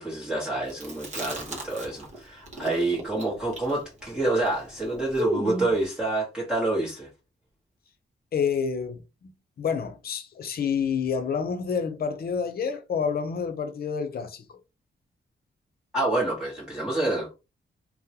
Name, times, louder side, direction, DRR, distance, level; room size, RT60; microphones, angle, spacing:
voice 1, 0.0-7.1 15.9-17.3, right 2 dB, 5° right, 1.0 m, -28 dB
Chewing mastication, 0.7-2.2 2.4-5.8, right 1 dB, 40° right, 1.0 m, -33 dB
voice 2, 8.3-9.3 9.6-14.6, left 6 dB, 55° left, 0.6 m, -28 dB
3.6 x 2.1 x 2.8 m
wide cardioid pair, 155°, 19 cm